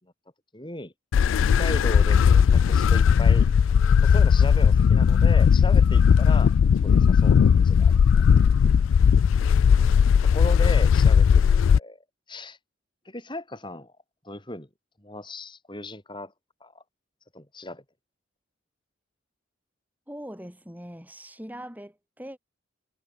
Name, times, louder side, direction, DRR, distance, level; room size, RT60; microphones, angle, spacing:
voice 1, 0.5-0.9 1.6-3.5 4.0-6.5 6.8-7.9 10.2-12.6 13.0-13.9 14.2-14.7 15.0-16.3 16.6-16.8 17.3-17.8, left 1 dB, 25° left, 6.2 m, -36 dB
sound 1, 1.1-11.8, left 7 dB, 80° left, 0.3 m, -18 dB
voice 2, 9.4-10.2 20.1-22.4, equal, 10° right, 6.2 m, -42 dB
head